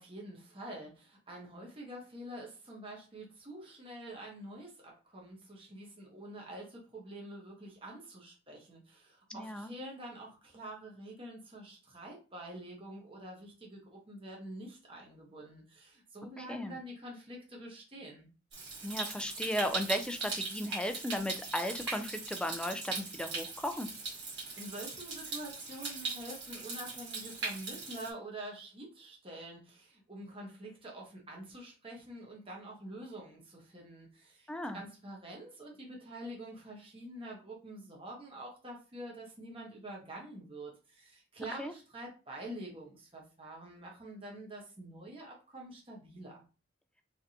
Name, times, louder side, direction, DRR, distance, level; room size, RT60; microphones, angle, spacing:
voice 1, 0.0-18.3 24.3-46.4, right 1 dB, 25° right, -2 dB, 1.1 m, -47 dB
voice 2, 9.3-9.7 16.4-16.8 18.8-23.9 34.5-34.8 41.6-41.7, left 1 dB, 5° left, 7 dB, 0.3 m, -36 dB
Stream, 18.5-28.1, right 4 dB, 60° right, 1.9 m, -40 dB
3.6 x 3.4 x 2.8 m, 0.34 s
head